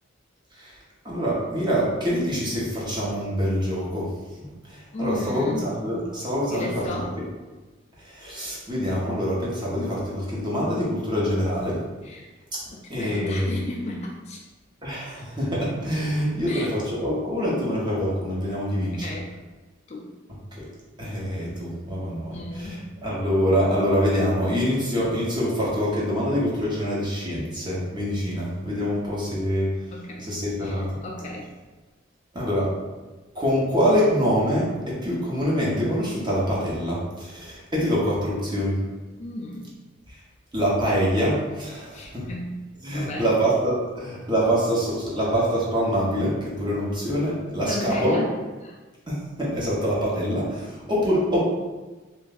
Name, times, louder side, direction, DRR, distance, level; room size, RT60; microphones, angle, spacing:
voice 1, 1.0-4.1 4.7-7.1 8.0-11.8 12.9-13.6 14.8-19.1 20.5-20.6 21.0-29.7 30.2-30.9 32.3-32.7 33.3-38.8 40.1-40.2 40.5-42.3 42.8-48.2 49.1-51.4, equal, 25° right, -6 dB, 1.0 m, -25 dB
voice 2, 4.9-5.7 6.5-7.2 12.0-12.3 12.7-14.4 16.5-16.7 18.9-19.3 19.9-20.1 22.3-22.9 29.9-30.3 30.6-31.5 39.2-39.7 41.9-43.3 47.6-48.4 48.6-48.8, left 1 dB, 35° left, -1 dB, 0.4 m, -34 dB
3.3 x 2.5 x 4.0 m, 1.2 s
head